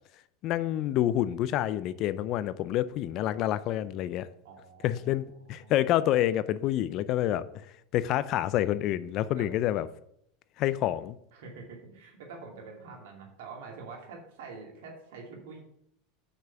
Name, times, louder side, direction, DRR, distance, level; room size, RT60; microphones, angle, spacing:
voice 1, 0.4-4.3 4.8-7.5 7.9-9.8 10.6-11.2, left 13 dB, 50° left, 0.5 m, -28 dB
voice 2, 4.4-5.7 9.3-9.5 11.3-15.6, right 4 dB, 70° right, 2.4 m, -46 dB
6.1 x 5.5 x 6.7 m
hypercardioid pair, 90°, 0 cm